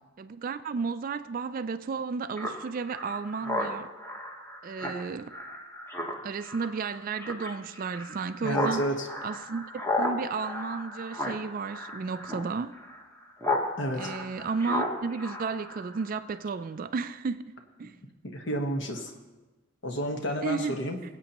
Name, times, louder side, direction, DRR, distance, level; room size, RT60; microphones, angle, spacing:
voice 1, 0.2-3.9 4.6-5.3 6.2-8.8 9.2-9.7 10.0-12.7 14.0-17.4 17.8-17.9 20.4-20.8, right 5 dB, 40° right, 0.3 m, -33 dB
Speech synthesizer, 2.4-13.7 14.0-16.2, left 2 dB, 10° left, 1.1 m, -34 dB
voice 2, 8.4-9.1 13.8-14.1 18.2-19.1 19.8-21.0, equal, 60° left, 1.3 m, -30 dB
22.0 x 8.3 x 3.0 m
head